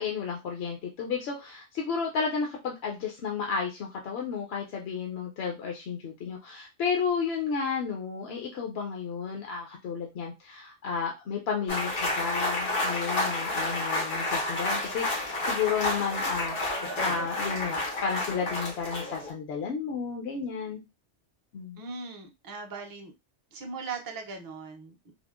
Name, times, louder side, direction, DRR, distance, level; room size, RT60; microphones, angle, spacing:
voice 1, 0.0-20.8 21.5-21.8, left 6 dB, 65° left, 1 dB, 0.8 m, -32 dB
sound 1, 11.7-19.3, left 2 dB, 85° left, 1.3 m, -30 dB
voice 2, 21.8-23.1 23.5-25.1, right 4 dB, 35° right, 3 dB, 0.3 m, -39 dB
3.5 x 2.0 x 2.3 m, 0.25 s
omnidirectional pair, 1.2 m